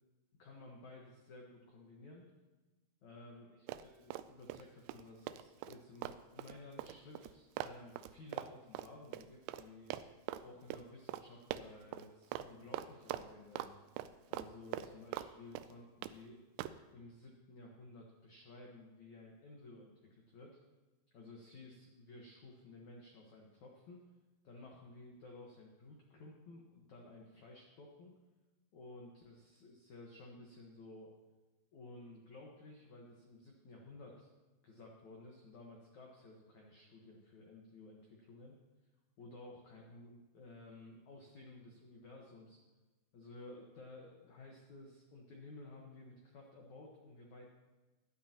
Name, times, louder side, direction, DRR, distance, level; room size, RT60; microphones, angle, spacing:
voice 1, 0.4-2.3 3.0-10.0 10.4-13.8 14.3-16.4 16.9-20.6 21.1-24.0 24.4-28.1 28.7-31.1 31.7-34.3 34.6-38.5 39.2-42.6 43.1-47.5, left 2 dB, 85° left, -1 dB, 1.6 m, -55 dB
Run, 3.7-4.6 4.9-9.7 9.9-10.4 10.7-10.8 11.1-11.2 11.5-12.1 12.3-12.5 12.7-13.7 14.0-15.3 15.6-16.2 16.6-16.8, right 12 dB, 85° right, 2.7 m, -43 dB
17.5 x 12.0 x 2.9 m, 1.2 s
omnidirectional pair, 5.5 m